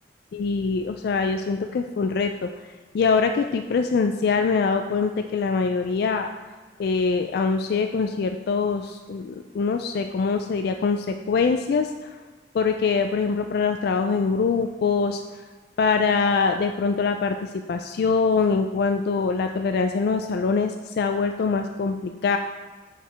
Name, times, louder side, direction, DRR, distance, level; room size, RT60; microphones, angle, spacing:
voice 1, 0.3-2.5 2.9-6.3 6.8-12.2 12.5-15.2 15.8-22.4, left 5 dB, 60° left, 6 dB, 0.3 m, -23 dB
7.7 x 4.7 x 3.4 m, 1.4 s
head